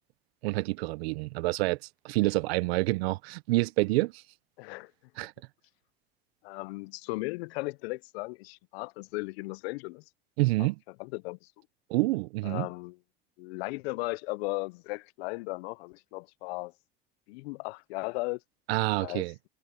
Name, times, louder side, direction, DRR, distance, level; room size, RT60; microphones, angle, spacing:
voice 1, 0.4-1.8 2.0-4.2 5.2-5.3 10.4-10.8 11.9-12.7 18.7-19.3, right 21 dB, 85° right, 0.7 m, -27 dB
voice 2, 4.6-4.9 6.4-10.0 10.6-10.7 11.0-11.5 12.4-13.0 13.4-16.7 17.3-18.4 19.0-19.2, left 24 dB, 80° left, 0.6 m, -36 dB
hypercardioid pair, 75°, 31 cm